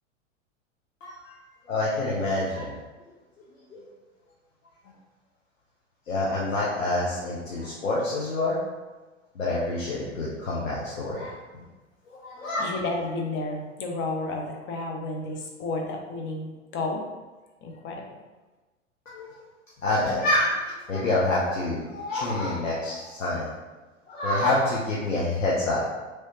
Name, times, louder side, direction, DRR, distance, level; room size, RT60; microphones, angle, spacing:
voice 1, 1.0-1.3 1.7-2.7 3.7-3.8 6.1-8.6 9.4-11.3 12.1-12.7 19.1-19.3 19.8-23.5 24.1-25.8, left 2 dB, 85° left, -6 dB, 0.8 m, -27 dB
voice 2, 12.6-17.0 17.6-18.0, left 2 dB, 30° left, 2 dB, 0.7 m, -31 dB
3.2 x 3.0 x 2.8 m, 1.2 s
figure-of-eight pair, 90°, 39 cm